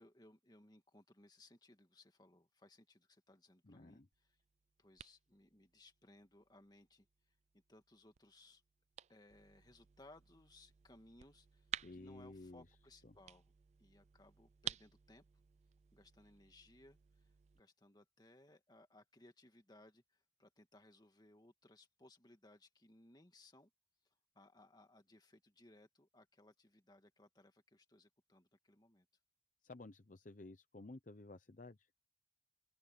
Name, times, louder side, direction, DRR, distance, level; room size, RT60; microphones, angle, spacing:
voice 1, 0.0-4.4 4.8-8.6 9.1-13.5 13.8-15.2 15.9-23.7 24.3-29.1, left 1 dB, 25° left, 2.1 m, -64 dB
voice 2, 3.6-4.1 11.8-12.6 29.6-31.9, left 2 dB, 45° left, 0.8 m, -54 dB
sound 1, 4.1-17.6, right 10 dB, 40° right, 0.3 m, -54 dB
open air
head